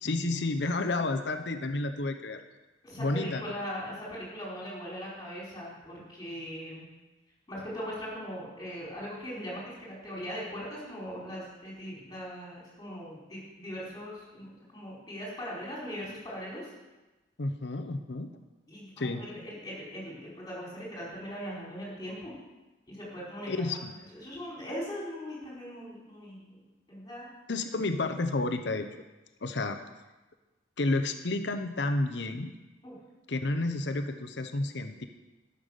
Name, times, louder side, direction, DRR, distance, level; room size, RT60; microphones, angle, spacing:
voice 1, 0.0-2.4 3.0-3.5 17.4-18.3 19.0-19.2 23.5-23.9 27.5-28.9 29.4-29.8 30.8-32.5 33.3-35.1, left 2 dB, 70° left, 7 dB, 0.8 m, -30 dB
voice 2, 2.8-6.9 7.5-14.5 14.7-16.7 18.7-22.3 22.9-23.5 24.1-26.6 26.9-27.3 32.8-33.0, equal, 20° left, -6 dB, 4.7 m, -40 dB
12.5 x 6.9 x 6.7 m, 1.1 s
head